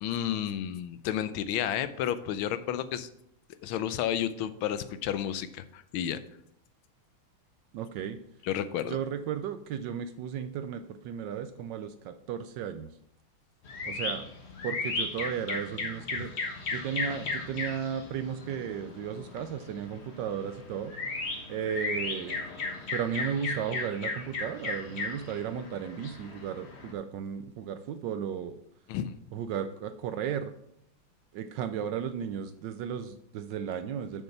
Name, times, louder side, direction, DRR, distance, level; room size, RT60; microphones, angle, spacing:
voice 1, 0.0-3.1 3.6-6.2 8.4-9.0 16.2-16.3 28.9-29.1, left 10 dB, 80° left, 13 dB, 1.4 m, -31 dB
voice 2, 7.7-8.2 8.9-12.9 13.8-14.2 14.6-16.3 16.7-20.9 21.5-22.4 22.9-28.6 29.3-30.5 31.3-34.2, right 8 dB, 75° right, 10 dB, 1.1 m, -34 dB
sound 1, 13.6-26.9, left 3 dB, 35° left, 1.3 m, -36 dB
6.7 x 6.5 x 5.7 m, 0.74 s
omnidirectional pair, 2.3 m